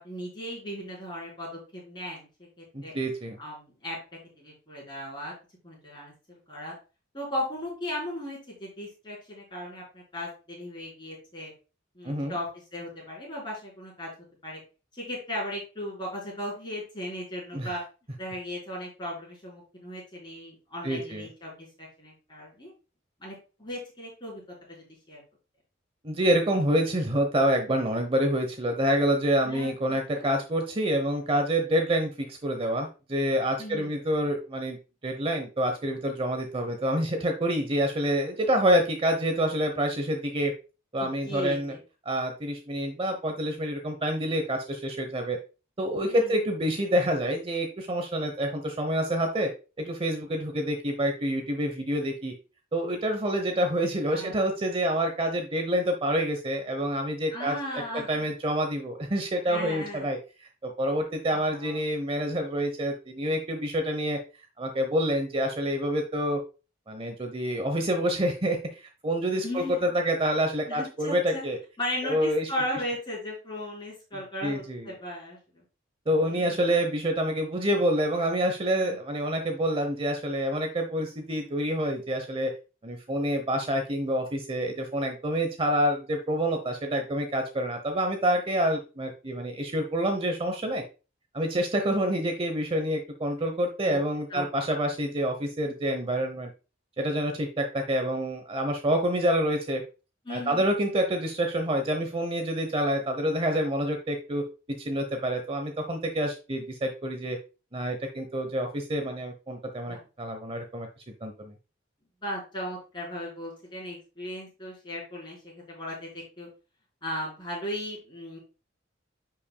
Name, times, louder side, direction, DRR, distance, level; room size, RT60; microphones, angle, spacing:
voice 1, 0.0-2.9 3.4-4.0 4.4-5.3 5.6-6.7 7.1-11.5 11.9-14.1 14.4-14.6 14.9-17.8 18.2-22.7 23.2-24.4 24.7-25.2 29.4-30.3 33.6-33.9 41.0-41.8 46.0-46.4 54.1-54.3 57.3-58.3 59.5-60.1 61.3-61.8 69.4-69.9 70.6-71.4 71.8-75.6 76.2-76.7 78.8-79.0 93.8-94.0 94.3-94.5 100.2-100.7 109.9-110.0 112.2-116.5 117.0-118.4, left 1 dB, 25° left, -5 dB, 4.5 m, -37 dB
voice 2, 2.7-3.4 12.0-12.4 17.5-17.7 20.8-21.3 26.0-40.5 40.9-41.7 42.0-45.4 45.8-49.5 49.8-52.3 52.7-57.6 57.9-60.2 60.6-64.2 64.6-66.4 66.9-71.6 72.0-72.5 74.4-74.9 76.1-82.5 82.8-90.8 91.3-96.5 97.0-99.8 100.3-104.4 104.8-107.4 107.7-110.9 111.2-111.5, equal, 30° right, 5 dB, 0.9 m, -27 dB
10.0 x 5.9 x 2.3 m, 0.32 s
head